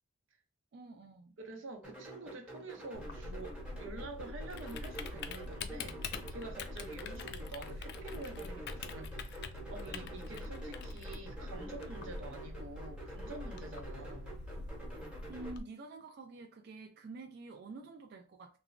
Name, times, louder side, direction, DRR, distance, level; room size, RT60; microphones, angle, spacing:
voice 1, 0.7-1.3 15.3-18.6, right 3 dB, 55° right, 0.3 m, -48 dB
voice 2, 1.4-14.4, right 2 dB, 90° right, 0.7 m, -48 dB
sound 1, 1.8-15.6, right 1 dB, 5° right, 0.8 m, -48 dB
Typing, 2.9-15.6, left 3 dB, 60° left, 0.3 m, -44 dB
3.0 x 2.1 x 2.4 m
head